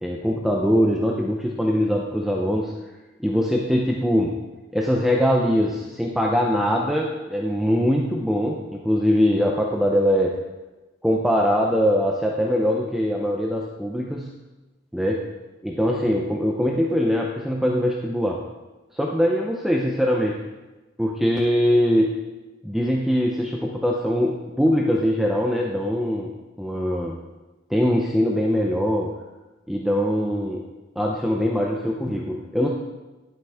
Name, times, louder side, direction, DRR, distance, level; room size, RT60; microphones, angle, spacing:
voice 1, 0.0-2.7 3.2-4.4 4.7-10.4 11.0-14.3 14.9-15.3 15.6-18.4 18.9-20.4 21.0-22.2 22.6-26.3 26.6-27.2 27.7-29.1 29.7-30.6 31.0-32.7, equal, ahead, -1 dB, 0.6 m, -22 dB
11.0 x 7.7 x 3.5 m, 1.1 s
head